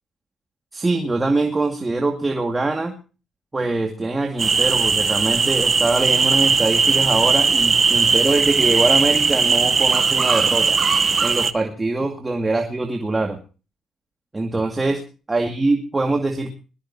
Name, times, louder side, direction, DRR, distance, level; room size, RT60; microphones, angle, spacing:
voice 1, 0.7-2.9 3.5-10.8 11.2-13.4 14.3-16.5, right 2 dB, 20° right, 3 dB, 2.1 m, -23 dB
sound 1, 4.4-11.5, right 5 dB, 40° right, 0.9 m, -18 dB
22.0 x 13.5 x 2.8 m, 0.34 s
cardioid pair, 90°, 0 cm